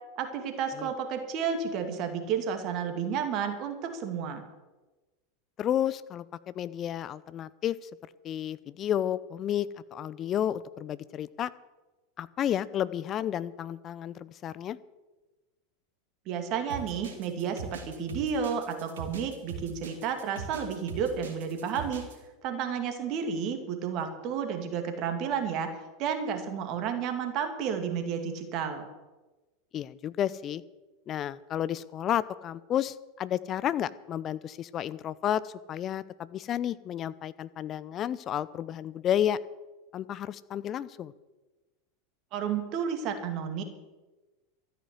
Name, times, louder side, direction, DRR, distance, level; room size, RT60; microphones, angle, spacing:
voice 1, 0.2-4.4 16.3-22.0 22.4-25.7 26.0-28.9 42.3-43.6, right 7 dB, 45° right, 6 dB, 2.3 m, -31 dB
voice 2, 5.6-7.8 8.2-11.5 12.2-14.8 29.7-30.6 31.1-39.4 39.9-41.1, left 10 dB, 35° left, 17 dB, 0.6 m, -31 dB
sound 1, 16.7-22.2, right 5 dB, 70° right, 2.5 m, -41 dB
13.5 x 9.6 x 7.9 m, 1.2 s
figure-of-eight pair, 85°, 0 cm